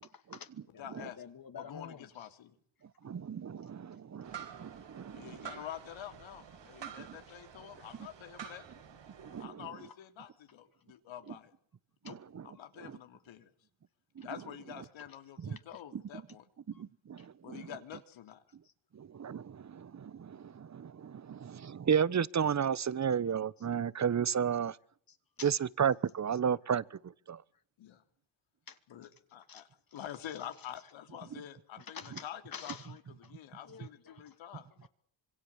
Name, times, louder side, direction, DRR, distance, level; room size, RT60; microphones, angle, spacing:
voice 1, 0.1-2.1 16.7-16.8 25.4-25.5 28.7-28.8 29.5-29.6 31.9-32.2 32.5-32.9 33.2-33.3 33.7-34.2 34.8-34.9, left 6 dB, 50° left, 2.4 m, -47 dB
voice 2, 0.8-1.2 1.6-2.6 5.1-8.7 9.4-11.5 12.0-12.2 12.4-13.5 14.2-16.4 17.4-18.4 27.8-28.0 28.9-29.7 29.9-34.7, left 10 dB, 85° left, 3.3 m, -47 dB
voice 3, 3.0-5.5 6.8-6.9 9.2-9.6 12.0-12.5 15.4-15.6 15.9-16.0 16.8-17.7 18.9-24.8 25.4-26.8 27.3-27.4, right 7 dB, 35° right, 1.1 m, -33 dB
sound 1, 4.2-9.4, right 8 dB, 70° right, 5.6 m, -49 dB
26.5 x 22.5 x 7.2 m
cardioid pair, 80°, 45 cm